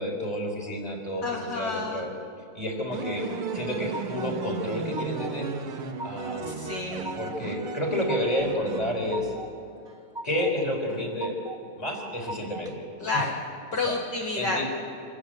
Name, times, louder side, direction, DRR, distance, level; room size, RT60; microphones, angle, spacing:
voice 1, 0.0-2.1 2.5-3.3 3.5-5.5 6.0-6.5 7.2-9.3 10.2-11.3 11.8-12.8 13.1-13.3 13.7-14.0 14.4-14.7, left 1 dB, 15° left, 0 dB, 4.6 m, -30 dB
voice 2, 1.2-2.0 6.4-7.1 13.0-13.3 13.7-14.6, left 3 dB, 55° left, 0 dB, 2.2 m, -30 dB
sound 1, 2.9-9.6, right 5 dB, 80° right, 2.2 m, -35 dB
sound 2, 3.3-4.3 4.7-5.4 5.7-6.4 6.7-7.4 7.8-8.5 8.8-9.5 9.9-10.5 10.9-11.6 12.0-12.7, right 1 dB, ahead, 2.1 m, -40 dB
27.0 x 15.0 x 9.4 m, 2.4 s
omnidirectional pair, 2.4 m